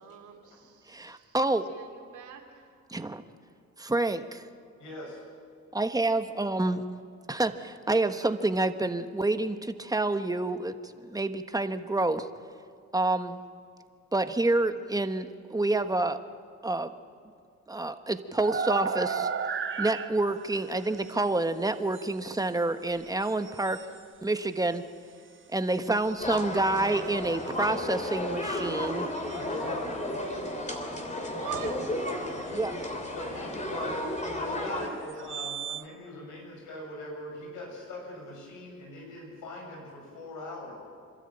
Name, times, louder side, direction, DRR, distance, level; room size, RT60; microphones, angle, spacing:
voice 1, 0.0-2.8 31.3-31.9, right 6 dB, 80° right, 2 dB, 3.1 m, -43 dB
voice 2, 0.9-1.7 2.9-3.2 3.8-4.4 5.7-6.8 7.3-12.3 12.9-13.4 14.1-16.2 16.6-16.9 17.7-19.3 19.8-23.8 24.2-24.8 25.5-29.1 32.5-32.8, right 2 dB, 10° right, 9 dB, 1.2 m, -28 dB
voice 3, 4.8-5.2 29.3-30.6 32.5-32.7 33.1-34.0 34.3-40.7, left 2 dB, 90° left, -1 dB, 7.5 m, -41 dB
sound 1, 18.4-21.2 21.9-22.1 23.0-24.0 25.8-27.8 28.6-28.7 29.1-29.5 31.9-32.0 32.3-32.9 35.1-35.9, right 6 dB, 40° right, 1.1 m, -36 dB
sound 2, 26.2-34.9, left 1 dB, 25° left, 3.3 m, -33 dB
26.5 x 13.0 x 9.0 m, 2.2 s
cardioid pair, 90°, 30 cm